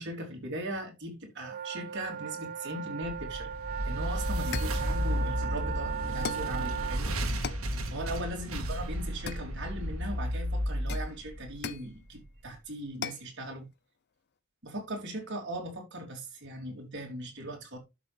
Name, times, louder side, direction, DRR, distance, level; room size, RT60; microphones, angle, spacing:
voice 1, 0.0-3.5 3.9-7.1 7.9-13.7 14.6-17.8, right 1 dB, 55° right, 3.4 m, -39 dB
sound 1, 1.4-7.0, right 8 dB, 40° right, 0.5 m, -37 dB
sound 2, 3.0-12.2, equal, 75° right, 1.8 m, -33 dB
sound 3, 3.8-4.0 4.5-4.9 6.2-6.6 7.4-7.7 9.3-9.9 10.9-11.9 13.0-13.3, left 6 dB, 50° left, 0.5 m, -39 dB
11.5 x 6.0 x 3.4 m
head